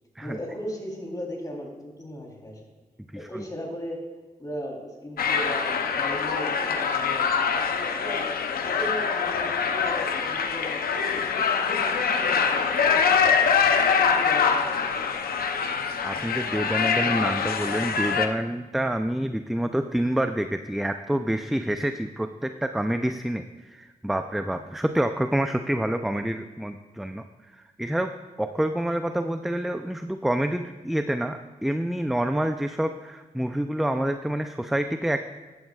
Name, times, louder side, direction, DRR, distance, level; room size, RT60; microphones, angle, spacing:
voice 1, 0.2-2.6 3.1-4.0 4.4-7.3 7.9-8.3 8.5-13.4 14.0-15.0, equal, 25° left, -1 dB, 3.5 m, -37 dB
sound 1, 5.2-18.3, left 6 dB, 85° left, 0.7 m, -24 dB
voice 2, 16.0-28.1 28.4-35.2, right 1 dB, ahead, 7 dB, 0.5 m, -27 dB
14.0 x 11.5 x 2.4 m, 1.3 s
cardioid pair, 70°, 15 cm